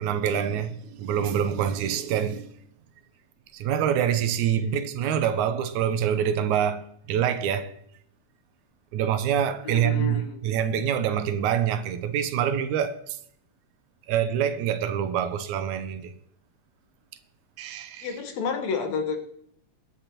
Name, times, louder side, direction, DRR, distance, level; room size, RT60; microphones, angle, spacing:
voice 1, 0.0-2.5 3.5-7.7 8.9-13.2 14.1-16.1 17.6-18.2, right 9 dB, 80° right, 2.1 m, -26 dB
voice 2, 9.6-10.4 18.0-19.2, left 5 dB, 70° left, 2.4 m, -30 dB
21.5 x 8.6 x 2.9 m
omnidirectional pair, 3.4 m